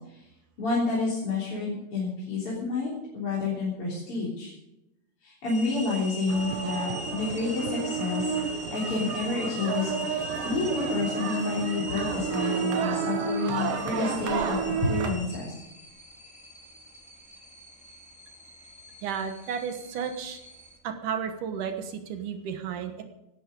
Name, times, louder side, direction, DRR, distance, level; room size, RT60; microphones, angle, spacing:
voice 1, 0.6-4.5 5.2-15.5, left 3 dB, 35° left, -7 dB, 4.1 m, -29 dB
sound 1, 5.4-20.8, left 1 dB, 5° left, 0.6 m, -41 dB
sound 2, 6.3-15.1, right 6 dB, 85° right, 3.7 m, -31 dB
voice 2, 19.0-20.4 20.8-23.0, right 7 dB, 65° right, 7 dB, 2.2 m, -33 dB
17.5 x 12.0 x 5.3 m, 0.91 s
omnidirectional pair, 5.0 m